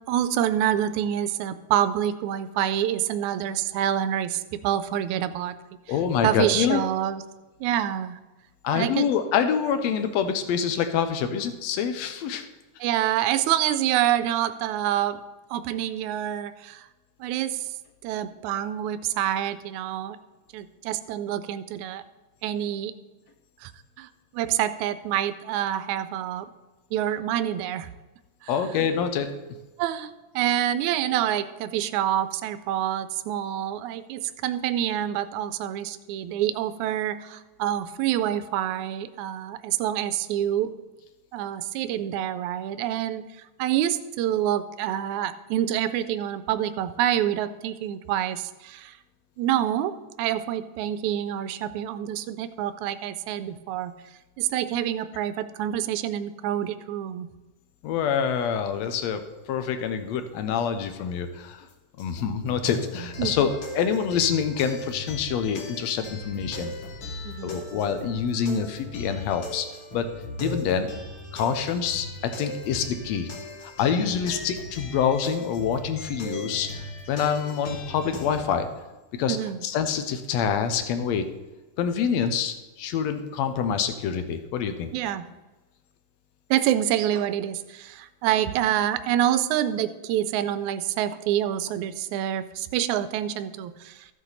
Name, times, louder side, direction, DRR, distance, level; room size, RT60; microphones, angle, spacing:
voice 1, 0.1-5.6 6.2-7.2 7.6-8.2 8.7-9.1 12.8-15.2 15.5-16.9 17.2-17.7 18.0-20.2 20.5-22.0 22.4-22.9 23.6-23.7 24.0-26.5 26.9-27.9 28.4-28.5 29.8-40.7 41.3-43.3 43.6-49.0 49.4-54.0 54.4-57.3 63.2-63.4 67.2-67.6 74.0-74.1 79.3-79.6 84.9-85.2 86.5-94.1, right 11 dB, 80° right, 12 dB, 1.8 m, -27 dB
voice 2, 5.9-6.8 8.6-12.5 28.5-29.3 57.8-59.2 59.5-61.7 62.0-66.7 67.4-69.7 69.9-70.0 70.4-70.9 71.3-72.1 72.4-73.3 73.6-76.7 77.1-78.7 79.2-79.4 79.6-81.2 81.8-84.9, left 7 dB, 70° left, 9 dB, 1.8 m, -26 dB
sound 1, 62.0-78.5, left 1 dB, 55° left, 2.0 m, -38 dB
14.5 x 7.4 x 4.0 m, 1.1 s
omnidirectional pair, 3.7 m